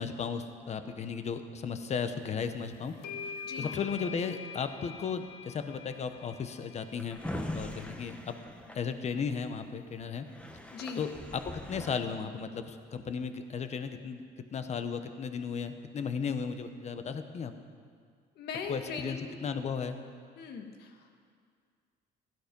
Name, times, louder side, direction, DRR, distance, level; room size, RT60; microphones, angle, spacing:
voice 1, 0.0-2.9 3.3-7.2 7.5-8.3 8.7-10.3 11.0-14.2 14.5-17.5 18.7-20.0, left 6 dB, 40° left, 9 dB, 1.1 m, -35 dB
sound 1, 2.4-2.5 3.0-7.9, left 5 dB, 85° left, 1.0 m, -45 dB
Drawer open or close, 6.7-9.5 10.0-10.1 10.3-12.0, left 1 dB, 5° left, 1.2 m, -41 dB
voice 2, 10.7-11.0 18.4-19.4 20.4-21.1, left 5 dB, 70° left, 4 dB, 1.8 m, -40 dB
16.0 x 12.5 x 5.4 m, 2.1 s
cardioid pair, 110°, 17 cm